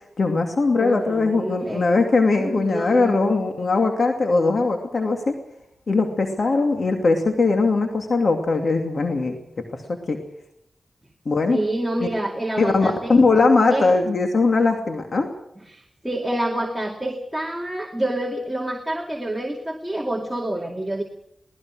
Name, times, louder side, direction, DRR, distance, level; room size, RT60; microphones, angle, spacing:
voice 1, 0.2-5.3 5.9-9.4 10.1-10.2 11.3-11.6 12.6-15.3, left 3 dB, 65° left, 4 dB, 2.6 m, -20 dB
voice 2, 0.8-2.0 2.3-3.2 11.5-13.2 13.7-13.9 15.7-21.0, right 1 dB, 10° right, 1 dB, 2.5 m, -27 dB
22.5 x 18.5 x 6.3 m, 0.75 s
cardioid pair, 60°, 0 cm